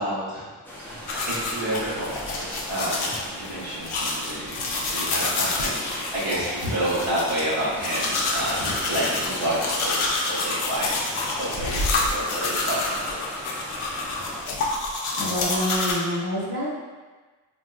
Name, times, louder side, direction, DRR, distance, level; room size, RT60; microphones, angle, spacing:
voice 1, 0.0-13.2, right 1 dB, 75° right, -9 dB, 1.1 m, -30 dB
sound 1, 0.6-14.4, left 1 dB, 5° left, 0.6 m, -38 dB
sound 2, 1.1-15.9, left 3 dB, 85° left, 0.6 m, -28 dB
voice 2, 15.1-16.7, equal, 45° right, -6 dB, 1.1 m, -27 dB
3.6 x 2.6 x 2.4 m, 1.3 s
cardioid pair, 50°, 48 cm